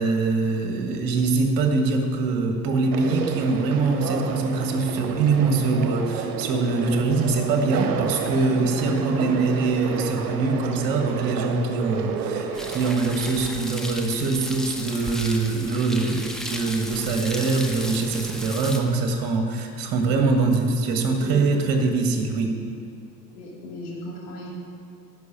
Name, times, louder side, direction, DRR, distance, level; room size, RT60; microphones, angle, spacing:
voice 1, 0.0-22.5, right 3 dB, 45° right, 4 dB, 1.7 m, -23 dB
Conversation, 2.9-12.9, right 6 dB, 65° right, 0.9 m, -31 dB
voice 2, 8.3-9.3 21.2-21.5 23.3-24.5, left 2 dB, 60° left, -4 dB, 2.8 m, -37 dB
sound 1, 12.5-18.8, left 1 dB, ahead, 0.8 m, -35 dB
11.5 x 5.4 x 7.2 m, 2.5 s
figure-of-eight pair, 75°, 49 cm